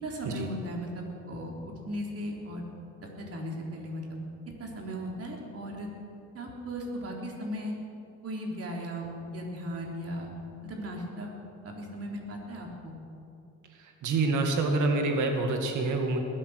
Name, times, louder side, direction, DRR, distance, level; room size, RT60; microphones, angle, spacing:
voice 1, 0.0-1.5 1.9-2.6 3.2-4.2 4.6-5.9 6.3-7.7 8.2-10.3 10.6-11.3 11.6-13.0, equal, 50° right, -1 dB, 3.7 m, -37 dB
voice 2, 13.7-16.2, right 3 dB, 80° right, 3 dB, 2.1 m, -27 dB
21.0 x 8.7 x 6.6 m, 2.7 s
cardioid pair, 90°, 30 cm